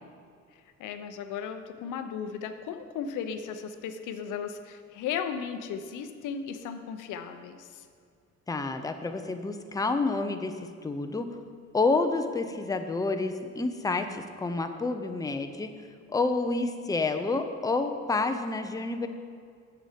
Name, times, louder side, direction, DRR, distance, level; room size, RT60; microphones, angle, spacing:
voice 1, 0.8-7.8, left 7 dB, 85° left, 9 dB, 0.6 m, -36 dB
voice 2, 8.5-10.6 10.8-11.3 11.7-15.7 16.1-19.1, left 3 dB, 10° left, 7 dB, 0.6 m, -29 dB
7.3 x 7.0 x 5.0 m, 2.2 s
cardioid pair, 90°, 30 cm